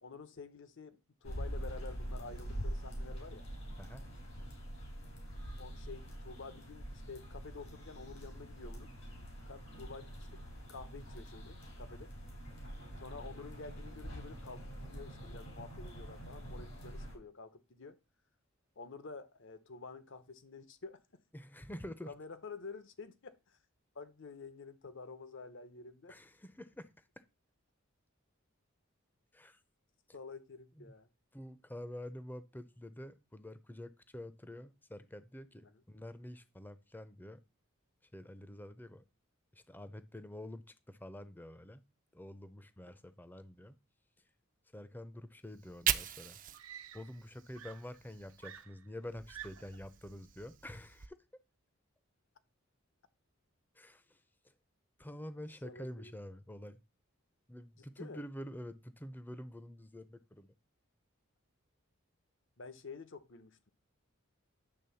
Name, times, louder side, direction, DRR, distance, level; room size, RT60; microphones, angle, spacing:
voice 1, 0.0-3.4 5.6-8.9 9.5-10.4 10.7-12.1 13.0-18.0 18.8-21.0 22.1-23.6 23.9-26.2 30.1-31.1 55.6-56.1 58.0-58.2 62.6-63.7, left 4 dB, 60° left, 0.9 m, -49 dB
sound 1, 1.2-17.2, equal, 85° left, 3.5 m, -45 dB
voice 2, 21.3-22.1 26.1-27.2 29.3-29.6 30.8-30.9 31.3-37.4 38.1-39.0 39.5-41.8 42.1-43.8 44.7-46.4 46.9-51.2 53.7-54.5 55.0-56.8 57.5-60.5, left 1 dB, 10° left, 0.6 m, -48 dB
Fire, 45.5-48.6 49.0-51.1, right 10 dB, 40° right, 0.5 m, -40 dB
Screaming, 45.7-45.8 46.5-47.3 47.5-49.8 50.8-51.1, right 10 dB, 90° right, 0.8 m, -51 dB
10.5 x 3.5 x 7.0 m
head